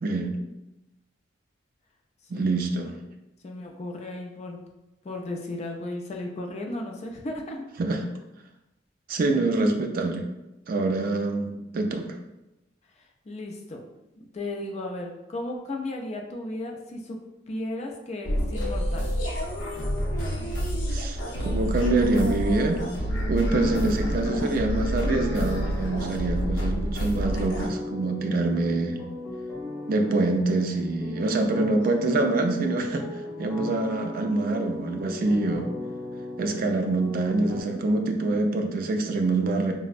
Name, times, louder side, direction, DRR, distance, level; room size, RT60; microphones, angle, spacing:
voice 1, 0.0-0.4 2.3-2.9 7.8-8.0 9.1-10.2 10.7-12.1 20.9-21.2 21.4-22.8 23.3-29.0 29.9-33.0 33.4-35.7 36.4-39.7, right 2 dB, 50° right, 4 dB, 0.4 m, -25 dB
voice 2, 3.4-4.6 5.0-7.6 13.3-13.8 14.2-17.2 17.5-19.1, left 2 dB, 35° left, 2 dB, 0.4 m, -35 dB
sound 1, 18.2-27.7, equal, 90° left, 0.6 m, -28 dB
sound 2, 23.0-37.6, left 2 dB, 15° left, 0.8 m, -37 dB
4.2 x 2.0 x 2.4 m, 0.94 s
head